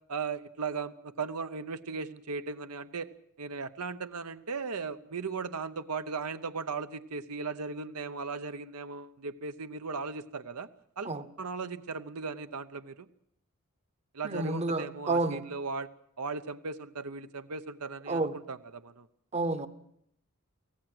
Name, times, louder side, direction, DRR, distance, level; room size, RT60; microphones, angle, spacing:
voice 1, 0.1-3.1 3.4-10.7 11.0-11.1 11.4-13.1 14.1-15.9 16.2-18.2 18.5-19.1, right 4 dB, 80° right, 0.9 m, -37 dB
voice 2, 14.2-15.4 18.1-18.3 19.3-19.7, right 2 dB, 30° right, 0.9 m, -30 dB
24.0 x 16.5 x 7.8 m
head